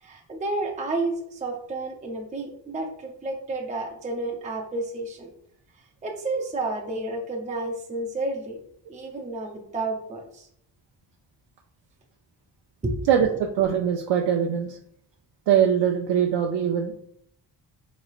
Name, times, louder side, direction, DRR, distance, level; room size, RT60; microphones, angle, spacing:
voice 1, 0.0-5.3 6.0-8.6 8.9-10.5 12.8-13.1, right 2 dB, 20° right, 1 dB, 0.5 m, -31 dB
voice 2, 13.1-14.8 15.5-16.9, right 8 dB, 80° right, 1 dB, 0.5 m, -22 dB
4.0 x 3.1 x 2.3 m, 0.67 s
wide cardioid pair, 135°, 42 cm